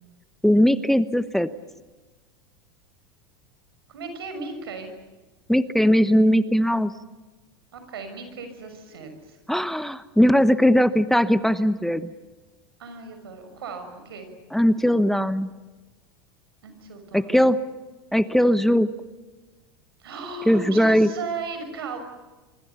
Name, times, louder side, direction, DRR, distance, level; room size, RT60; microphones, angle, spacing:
voice 1, 0.4-1.5 5.5-6.9 9.5-12.1 14.5-15.5 17.1-17.6 18.1-18.9 20.5-21.1, equal, ahead, 13 dB, 1.0 m, -19 dB
voice 2, 3.9-4.9 7.7-9.4 12.8-14.3 16.6-17.4 20.0-22.0, right 4 dB, 85° right, 7 dB, 6.3 m, -36 dB
26.5 x 24.5 x 7.1 m, 1.2 s
hypercardioid pair, 95°, 12 cm